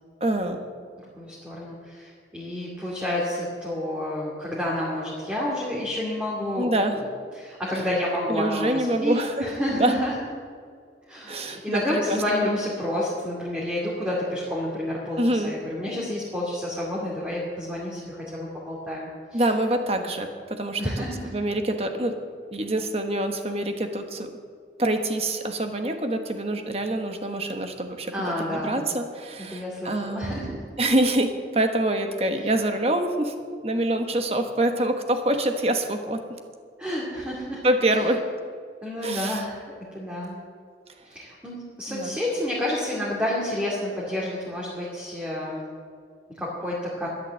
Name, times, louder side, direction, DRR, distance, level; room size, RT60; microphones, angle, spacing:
voice 1, 0.2-0.6 6.6-7.0 8.3-9.9 11.3-11.8 12.1-12.7 15.2-15.5 19.3-21.0 21.3-22.2 22.5-24.3 24.8-33.3 33.6-36.2 37.6-38.2 39.0-39.4 41.9-42.2, right 1 dB, 35° right, 6 dB, 1.2 m, -26 dB
voice 2, 1.2-6.7 7.3-10.1 11.1-19.4 20.8-21.3 28.1-28.8 29.5-30.6 36.8-37.6 37.9-38.1 38.8-39.6 39.9-40.3 41.1-45.6 46.4-47.1, left 1 dB, 5° right, -6 dB, 2.4 m, -29 dB
12.5 x 11.0 x 7.5 m, 2.1 s
head